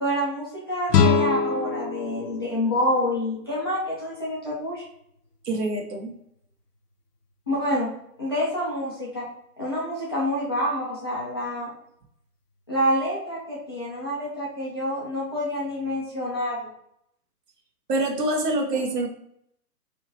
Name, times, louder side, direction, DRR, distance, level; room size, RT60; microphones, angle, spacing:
voice 1, 0.0-4.8 7.5-7.9 8.2-9.3 9.6-11.7 12.7-16.6 18.7-18.8, equal, 15° left, -7 dB, 0.4 m, -27 dB
sound 1, 0.9-3.9, left 5 dB, 80° left, 0.6 m, -24 dB
voice 2, 5.4-6.1 17.9-19.1, right 2 dB, 80° right, 2 dB, 1.1 m, -25 dB
4.3 x 2.8 x 2.8 m, 0.73 s
hypercardioid pair, 140°, 47 cm